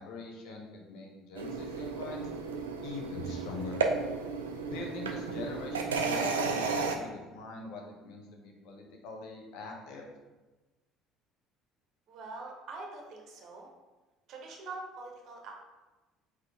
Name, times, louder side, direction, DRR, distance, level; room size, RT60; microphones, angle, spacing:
voice 1, 0.0-2.3 2.8-3.8 4.7-10.1, left 3 dB, 65° left, 1 dB, 0.7 m, -43 dB
sound 1, 1.4-7.0, right 4 dB, 80° right, 0.3 m, -33 dB
voice 2, 12.1-13.7 14.3-15.6, right 3 dB, 55° right, 1 dB, 0.8 m, -44 dB
3.7 x 3.1 x 3.4 m, 1.1 s
figure-of-eight pair, 60°, 0 cm